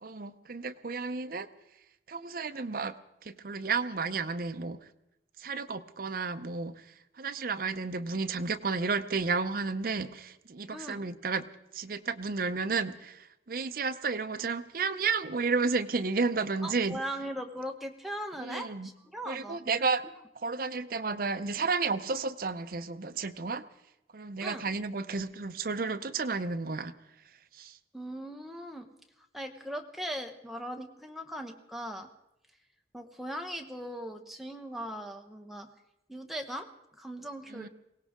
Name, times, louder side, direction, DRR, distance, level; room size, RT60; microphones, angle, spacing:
voice 1, 0.0-1.5 2.1-3.0 3.2-4.8 5.4-11.4 11.7-17.0 18.4-18.9 19.3-20.0 20.4-23.7 24.1-26.9 27.5-27.8 37.5-37.7, right 4 dB, 50° right, 10 dB, 0.6 m, -32 dB
voice 2, 10.7-11.0 16.6-19.8 24.4-24.7 27.9-28.9 29.3-32.1 32.9-35.7 36.1-36.7 37.0-37.7, equal, ahead, 4 dB, 1.0 m, -39 dB
22.5 x 17.5 x 3.7 m, 0.86 s
head